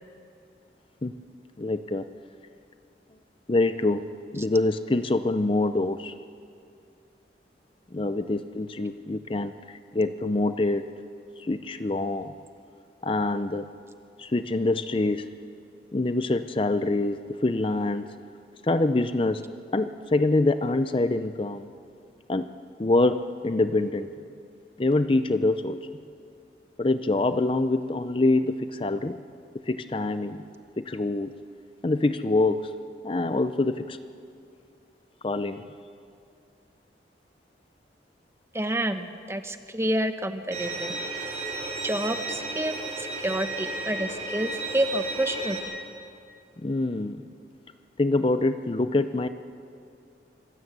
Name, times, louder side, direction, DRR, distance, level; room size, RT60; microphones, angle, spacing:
voice 1, 1.6-2.1 3.5-6.1 7.9-10.9 11.4-12.3 13.0-13.7 14.2-15.3 15.9-18.1 18.6-19.5 19.7-21.7 22.3-22.5 22.8-24.1 24.8-25.8 26.8-29.2 29.7-30.4 30.8-31.3 31.8-32.7 33.0-34.0 35.2-35.6 46.6-47.2 48.0-49.3, left 2 dB, 30° left, 11 dB, 0.6 m, -25 dB
voice 2, 38.5-40.9 41.8-45.6, right 1 dB, 15° right, 8 dB, 0.9 m, -29 dB
Bowed string instrument, 40.5-45.6, right 2 dB, 40° right, 6.5 m, -33 dB
25.5 x 16.0 x 8.1 m, 2.5 s
head